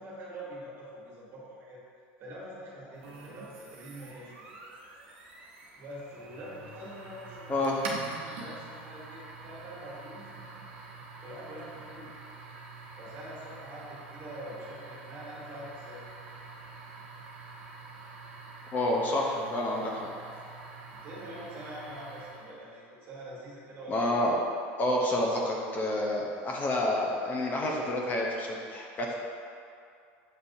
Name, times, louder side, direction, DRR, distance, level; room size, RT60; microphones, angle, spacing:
voice 1, 0.0-1.8 2.2-4.4 5.0-5.2 5.7-7.6 8.2-10.2 11.2-12.2 13.0-16.0 20.9-24.2, equal, 40° right, -6 dB, 1.4 m, -44 dB
sound 1, 3.0-22.6, right 3 dB, 90° right, 0.7 m, -46 dB
voice 2, 18.7-20.1 23.9-24.4 24.8-29.1, left 1 dB, 30° left, -2 dB, 0.5 m, -29 dB
7.2 x 2.7 x 2.6 m, 2.4 s
supercardioid pair, 125°, 6 cm